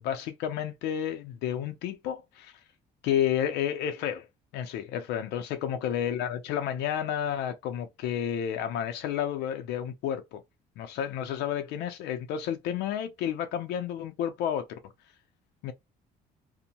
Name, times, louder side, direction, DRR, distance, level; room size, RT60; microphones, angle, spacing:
voice 1, 0.0-2.5 3.0-4.3 4.5-10.4 10.8-14.8 15.6-15.7, left 9 dB, 85° left, 0.5 m, -31 dB
2.7 x 2.1 x 2.8 m
cardioid pair, 110°, 17 cm